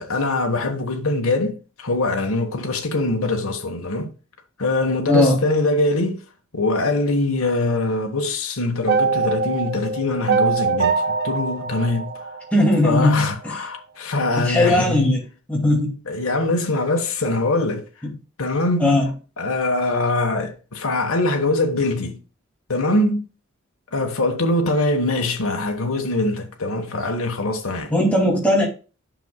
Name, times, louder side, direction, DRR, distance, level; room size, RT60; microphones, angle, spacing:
voice 1, 0.0-4.1 4.6-6.2 6.5-12.2 12.8-15.2 16.1-17.8 18.4-19.0 19.4-22.2 22.7-23.3 23.9-27.9, left 2 dB, 85° left, 1.3 m, -23 dB
voice 2, 5.1-5.4 12.5-13.5 14.4-15.2 15.5-16.0 18.8-19.1 27.9-28.6, left 1 dB, 5° left, 2.3 m, -18 dB
sound 1, 8.9-13.1, right 4 dB, 50° right, 0.6 m, -23 dB
9.1 x 6.2 x 2.2 m
head